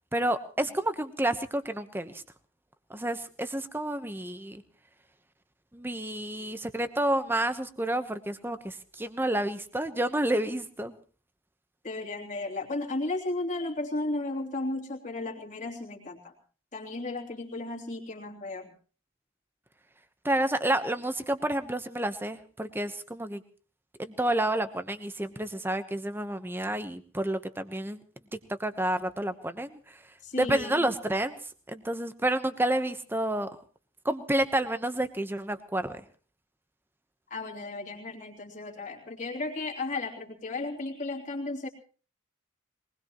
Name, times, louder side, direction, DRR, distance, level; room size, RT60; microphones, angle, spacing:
voice 1, 0.1-2.1 2.9-4.6 5.7-10.9 20.2-23.4 24.0-28.0 28.6-29.8 30.4-31.4 31.7-33.6 34.0-36.0, right 1 dB, 10° right, 10 dB, 1.0 m, -29 dB
voice 2, 11.8-16.3 16.7-18.7 30.2-30.9 37.3-41.7, left 2 dB, 40° left, -1 dB, 3.1 m, -34 dB
22.5 x 20.0 x 3.1 m, 0.39 s
head